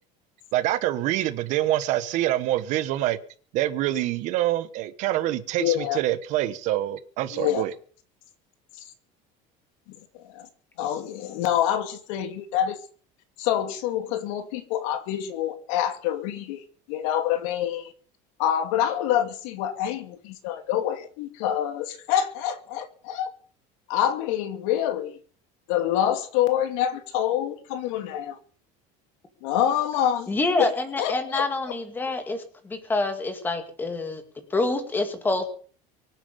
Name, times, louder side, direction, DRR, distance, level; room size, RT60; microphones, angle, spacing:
voice 1, 0.5-3.2 3.5-7.7, right 14 dB, 50° right, 1.2 m, -26 dB
voice 2, 5.6-6.0 7.3-7.6 10.1-10.5 10.8-12.8 13.4-17.9 18.4-23.3 23.9-25.2 25.7-28.4 29.4-30.3 30.6-30.7 31.0-31.5, left 10 dB, 90° left, 2.5 m, -26 dB
voice 3, 30.3-34.2 34.5-35.4, left 2 dB, 10° left, 2.2 m, -27 dB
24.0 x 9.2 x 5.4 m
cardioid pair, 180°, 17 cm